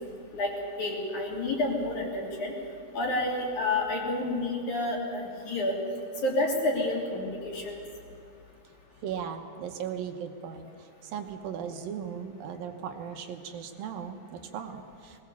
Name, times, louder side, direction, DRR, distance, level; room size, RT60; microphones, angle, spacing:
voice 1, 0.8-2.5 2.9-5.8 6.2-7.8, left 2 dB, 50° left, -2 dB, 4.4 m, -29 dB
voice 2, 9.0-15.2, right 7 dB, 70° right, 5 dB, 2.6 m, -37 dB
21.0 x 19.0 x 7.1 m, 2.6 s
omnidirectional pair, 4.5 m